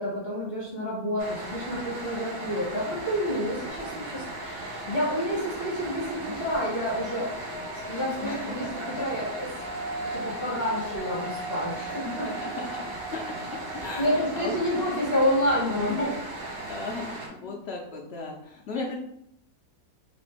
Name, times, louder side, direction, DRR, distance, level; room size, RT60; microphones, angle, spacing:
voice 1, 0.0-7.3 7.7-9.5 10.1-12.3 14.0-16.1, equal, 40° left, -6 dB, 1.3 m, -29 dB
sound 1, 1.2-17.3, right 2 dB, 45° right, 0.9 m, -37 dB
sound 2, 3.7-4.5 6.9-14.3, right 1 dB, 65° right, 1.6 m, -39 dB
voice 2, 6.0-6.4 8.2-8.7 9.9-10.1 11.7-14.8 15.8-16.2 16.7-19.0, left 3 dB, 70° left, 0 dB, 0.6 m, -37 dB
3.3 x 2.5 x 4.2 m, 0.73 s
omnidirectional pair, 1.7 m